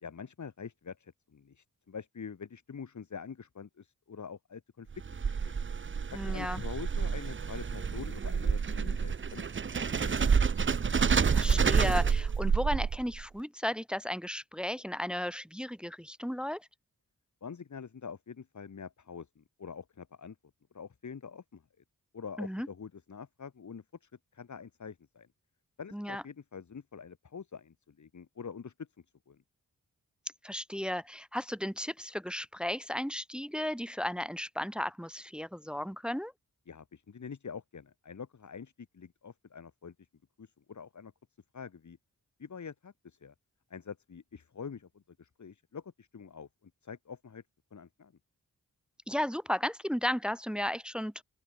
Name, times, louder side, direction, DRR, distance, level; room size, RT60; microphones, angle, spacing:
voice 1, 0.0-4.9 5.2-5.6 6.1-9.4 9.7-10.5 17.4-20.4 20.7-21.8 22.1-25.3 25.8-28.9 29.3-29.4 36.7-40.1 40.4-41.1 41.5-42.0 42.4-43.3 43.7-47.4 47.7-48.1, left 6 dB, 55° left, 1.8 m, -45 dB
sound 1, 4.9-13.2, right 6 dB, 35° right, 0.7 m, -28 dB
voice 2, 6.1-6.6 11.3-16.7 22.4-22.7 25.9-26.2 30.4-36.3 49.1-51.2, equal, 5° right, 0.4 m, -34 dB
open air
cardioid pair, 70°, 34 cm